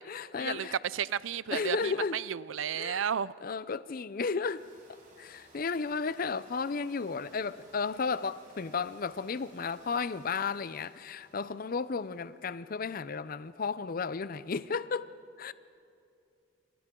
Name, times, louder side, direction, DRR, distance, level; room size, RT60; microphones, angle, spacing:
voice 1, 0.0-0.8 1.5-2.2 2.7-3.1 3.4-4.6 5.2-15.1 15.4-15.5, left 5 dB, 45° left, 0.5 m, -33 dB
voice 2, 0.9-3.3, right 8 dB, 85° right, 0.4 m, -33 dB
sound 1, 4.6-12.5, right 2 dB, 40° right, 5.7 m, -60 dB
29.5 x 26.5 x 3.8 m
head